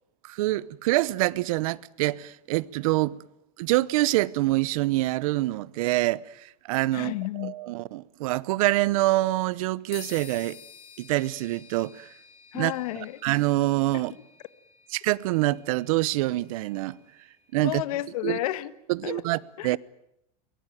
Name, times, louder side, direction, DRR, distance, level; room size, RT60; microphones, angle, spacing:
voice 1, 0.2-3.2 3.6-10.6 11.0-12.1 12.5-12.7 13.2-14.1 14.9-17.0 17.5-17.8 18.2-18.4 18.9-19.8, right 18 dB, 65° right, 0.9 m, -26 dB
voice 2, 6.9-7.6 12.5-13.2 13.9-14.0 17.6-18.7 19.0-19.2 19.6-19.7, left 16 dB, 70° left, 1.5 m, -31 dB
sound 1, 9.9-17.6, left 9 dB, 30° left, 3.6 m, -50 dB
23.0 x 20.5 x 9.2 m
supercardioid pair, 165°, 20 cm